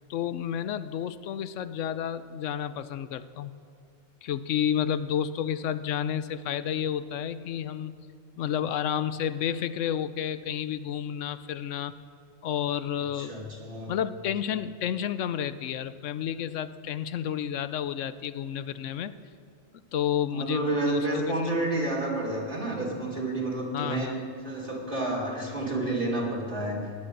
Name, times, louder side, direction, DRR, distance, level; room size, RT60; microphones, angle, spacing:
voice 1, 0.1-3.5 4.2-7.9 8.4-11.9 12.4-13.3 13.9-19.2 19.9-21.2 23.7-24.1, left 9 dB, 80° left, 13 dB, 1.0 m, -30 dB
voice 2, 13.1-13.9 20.3-24.2 24.4-26.8, right 2 dB, 45° right, -4 dB, 2.9 m, -30 dB
17.5 x 10.0 x 6.7 m, 2.4 s
omnidirectional pair, 1.3 m